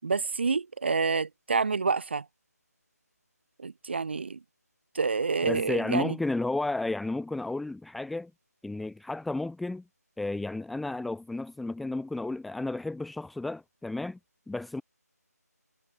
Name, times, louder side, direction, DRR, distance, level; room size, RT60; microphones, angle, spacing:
voice 1, 0.0-2.2 3.6-4.4 4.9-6.2, right 4 dB, 40° right, 4.3 m, -28 dB
voice 2, 5.4-8.3 8.6-9.8 10.2-14.2 14.5-14.8, left 2 dB, ahead, 0.8 m, -32 dB
figure-of-eight pair, 175°, 9 cm